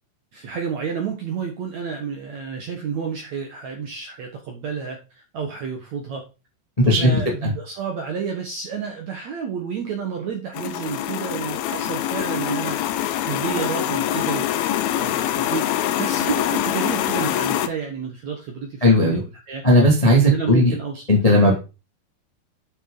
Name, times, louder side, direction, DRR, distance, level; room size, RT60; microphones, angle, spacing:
voice 1, 0.3-6.2 6.8-14.5 14.9-15.7 16.0-19.6 20.2-21.5, right 6 dB, 65° right, 2 dB, 1.8 m, -30 dB
voice 2, 6.8-7.5 18.8-19.2 19.6-20.7 21.1-21.5, left 1 dB, 30° left, -1 dB, 0.6 m, -16 dB
sound 1, 10.5-17.7, left 12 dB, 80° left, 2.3 m, -24 dB
9.6 x 6.3 x 3.9 m, 0.30 s
omnidirectional pair, 5.0 m